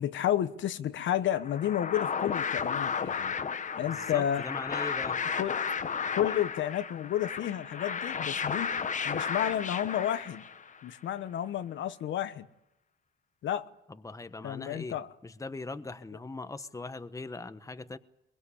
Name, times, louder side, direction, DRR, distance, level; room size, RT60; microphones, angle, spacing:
voice 1, 0.0-3.4 3.8-4.4 5.4-5.6 6.1-8.7 9.0-10.4 10.8-12.5 13.4-13.7 14.4-15.1, left 11 dB, 75° left, 1.1 m, -31 dB
sound 1, 1.4-10.8, left 6 dB, 40° left, 1.0 m, -33 dB
voice 2, 3.7-5.2 13.9-15.0 15.2-18.0, left 3 dB, 15° left, 1.1 m, -40 dB
22.5 x 21.5 x 8.5 m
cardioid pair, 90°, 20 cm